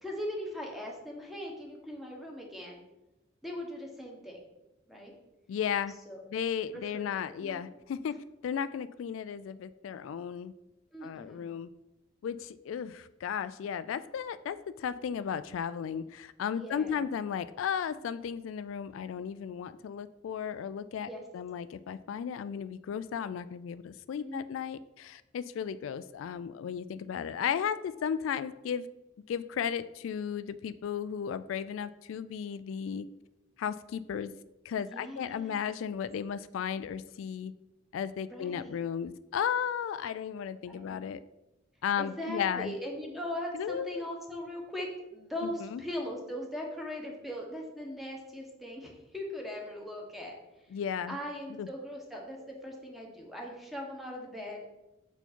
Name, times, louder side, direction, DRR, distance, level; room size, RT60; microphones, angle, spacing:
voice 1, 0.0-2.8 3.4-4.4 4.9-5.1 6.1-6.2 6.7-7.0 7.4-7.6 10.9-11.5 16.5-17.0 21.0-21.2 24.2-24.5 34.8-35.7 38.3-38.8 40.7-41.1 42.0-50.7 51.1-54.7, left 1 dB, ahead, -1 dB, 1.3 m, -40 dB
voice 2, 5.5-5.9 6.3-8.2 8.4-10.5 11.0-11.7 12.2-21.1 21.3-28.9 29.3-33.1 33.6-34.3 34.7-37.5 37.9-41.2 41.8-42.7 43.5-44.1 45.4-45.8 50.7-51.2 51.6-51.7, left 8 dB, 90° left, 14 dB, 0.3 m, -35 dB
6.8 x 4.4 x 4.4 m, 0.94 s
head